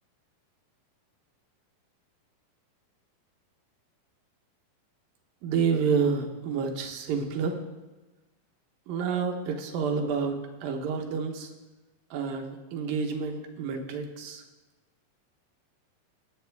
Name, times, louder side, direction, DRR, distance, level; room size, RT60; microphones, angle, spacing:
voice 1, 5.4-7.6 8.9-11.5 12.1-14.4, right 5 dB, 90° right, 3 dB, 3.0 m, -29 dB
21.0 x 8.6 x 3.5 m, 1.1 s
omnidirectional pair, 3.9 m